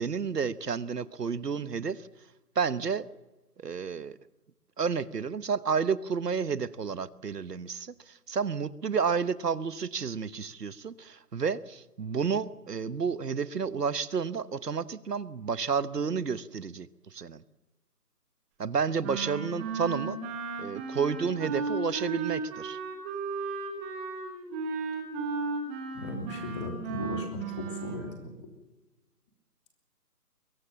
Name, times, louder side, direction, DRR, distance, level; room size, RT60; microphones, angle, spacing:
voice 1, 0.0-2.1 2.5-3.1 3.6-4.2 4.8-17.4 18.6-20.2 20.6-22.8, right 6 dB, 85° right, 17 dB, 1.2 m, -31 dB
Wind instrument woodwind instrument, 19.0-28.0, right 4 dB, 10° right, 1.3 m, -35 dB
voice 2, 25.9-28.3, left 1 dB, 20° left, 4 dB, 3.2 m, -37 dB
22.5 x 17.5 x 7.5 m, 1.0 s
figure-of-eight pair, 160°, 46 cm